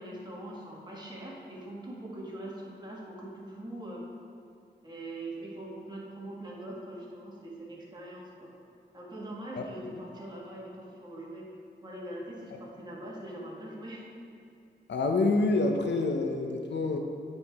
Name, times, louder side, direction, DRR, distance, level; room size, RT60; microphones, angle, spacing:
voice 1, 0.0-4.0 4.8-8.5 8.9-11.5 11.8-14.1, right 1 dB, 20° right, -5 dB, 1.6 m, -42 dB
voice 2, 14.9-17.0, left 3 dB, 70° left, 4 dB, 0.6 m, -27 dB
8.5 x 4.5 x 3.5 m, 2.6 s
wide cardioid pair, 75°, 19 cm